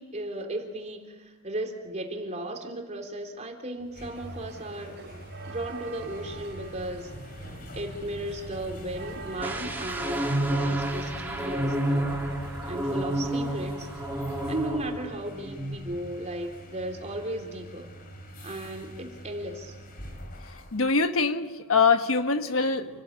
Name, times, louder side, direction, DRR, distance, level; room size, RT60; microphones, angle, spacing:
voice 1, 0.0-4.9 5.5-7.1 7.7-12.1 12.7-13.9 14.5-17.9 18.4-19.8, right 1 dB, 35° right, 3 dB, 3.5 m, -35 dB
sound 1, 3.8-20.9, equal, 45° left, 3.3 m, -43 dB
sound 2, 4.1-14.4, right 4 dB, 55° right, 3.9 m, -47 dB
sound 3, 9.4-15.1 15.4-15.7, right 1 dB, 10° right, 3.0 m, -30 dB
voice 2, 20.7-22.9, left 4 dB, 70° left, 8 dB, 1.4 m, -23 dB
29.0 x 18.5 x 8.8 m, 1.3 s
head